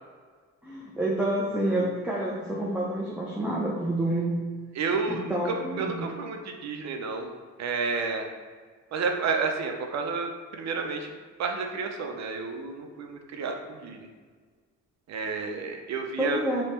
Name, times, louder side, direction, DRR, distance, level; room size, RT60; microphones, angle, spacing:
voice 1, 0.6-4.7 5.1-6.1 16.2-16.6, right 1 dB, 5° right, -5 dB, 0.7 m, -28 dB
voice 2, 4.7-7.3 7.6-8.3 8.9-11.1 11.4-14.1 15.1-16.5, right 4 dB, 60° right, 4 dB, 0.7 m, -31 dB
3.4 x 3.0 x 4.3 m, 1.5 s
cardioid pair, 90°, 30 cm